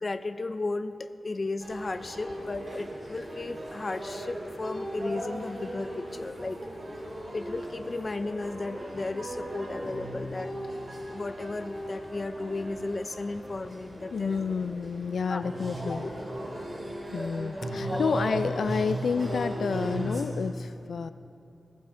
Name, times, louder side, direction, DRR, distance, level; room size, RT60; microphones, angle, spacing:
voice 1, 0.0-6.6 7.3-10.5 11.1-14.4 15.3-15.4 15.8-16.0 17.9-18.2, left 2 dB, 35° left, 10 dB, 0.5 m, -34 dB
sound 1, 1.6-20.2, right 1 dB, 40° right, 4.0 m, -37 dB
voice 2, 14.1-16.1 16.7-21.1, left 5 dB, 85° left, 12 dB, 0.4 m, -30 dB
19.5 x 15.0 x 3.7 m, 2.6 s
wide cardioid pair, 155°, 0 cm